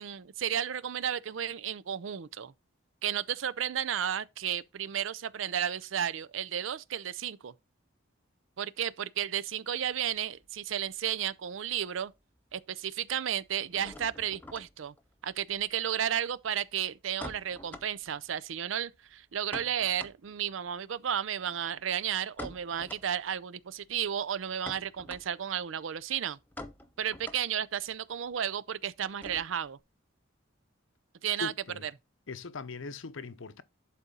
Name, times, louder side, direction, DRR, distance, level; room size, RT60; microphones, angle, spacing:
voice 1, 0.0-2.5 3.0-7.5 8.6-12.1 12.5-14.9 15.2-26.4 27.0-29.8 31.2-31.5 31.8-31.9, right 9 dB, 70° right, 0.5 m, -33 dB
sound 1, 9.9-11.6 11.8-12.5 12.8-29.8, left 1 dB, 10° left, 0.8 m, -49 dB
voice 2, 31.4-31.8 32.3-33.6, left 4 dB, 75° left, 0.7 m, -40 dB
11.0 x 4.2 x 3.8 m
head